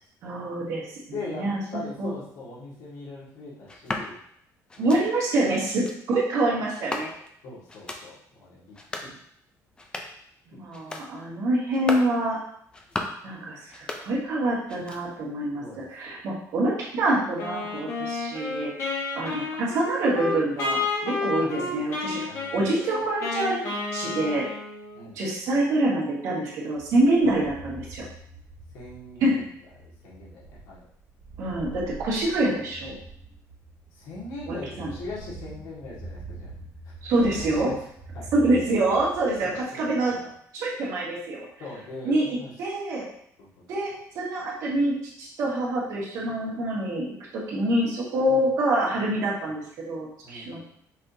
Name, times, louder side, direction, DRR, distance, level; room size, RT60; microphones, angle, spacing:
voice 1, 0.2-0.8 1.2-2.1 4.8-7.1 10.5-12.4 13.2-18.7 19.2-22.2 22.5-24.5 25.2-28.0 29.2-29.4 31.4-33.0 34.5-34.9 37.0-37.7 38.3-40.2 40.5-41.4 42.0-42.3 42.6-43.1 43.7-47.1 47.5-50.6, right 1 dB, 60° right, -5 dB, 1.7 m, -26 dB
voice 2, 1.1-4.2 4.8-5.0 7.4-8.8 9.0-9.1 10.5-10.6 15.6-16.2 21.4-21.9 22.2-22.7 24.9-25.2 27.2-27.4 28.7-29.4 29.8-30.9 34.0-36.5 37.2-37.7 38.1-38.3 39.4-40.3 41.6-42.5 43.4-43.5 48.3-48.5 50.2-50.6, left 2 dB, 75° left, -6 dB, 2.0 m, -40 dB
sound 1, 3.7-4.1 4.7-5.0 5.7-6.0 6.7-7.4 7.7-8.0 8.7-9.1 9.7-10.2 10.7-11.1 11.7-12.1 12.7-13.2 13.7-14.4 14.7-15.3, left 2 dB, 15° left, 0.4 m, -36 dB
Wind instrument woodwind instrument, 17.4-25.1, left 3 dB, 45° left, 1.2 m, -31 dB
sound 2, 26.8-39.6, right 3 dB, 15° right, 0.7 m, -44 dB
5.6 x 3.4 x 2.7 m, 0.68 s
cardioid pair, 170°, 6 cm